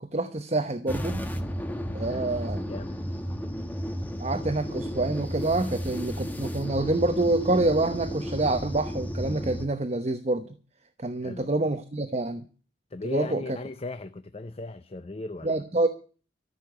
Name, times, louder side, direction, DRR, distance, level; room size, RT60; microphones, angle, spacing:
voice 1, 0.1-1.3 1.9-2.8 4.2-10.5 11.0-12.4 13.0-13.4 15.4-15.9, right 2 dB, 35° right, 0.9 m, -27 dB
sound 1, 0.9-9.7, equal, 10° left, 1.2 m, -33 dB
voice 2, 2.1-2.4 2.7-3.0 11.2-11.5 12.9-15.6, left 2 dB, 35° left, 0.6 m, -37 dB
14.0 x 6.8 x 9.6 m
head